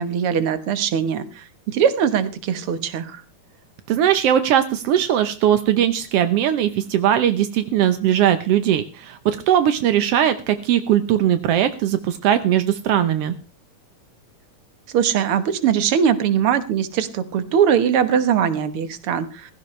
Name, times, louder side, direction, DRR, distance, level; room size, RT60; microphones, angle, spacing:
voice 1, 0.0-3.2 14.9-19.5, right 8 dB, 55° right, 12 dB, 1.7 m, -21 dB
voice 2, 3.9-13.3, right 10 dB, 75° right, 10 dB, 1.4 m, -19 dB
16.5 x 16.0 x 3.2 m, 0.32 s
omnidirectional pair, 3.8 m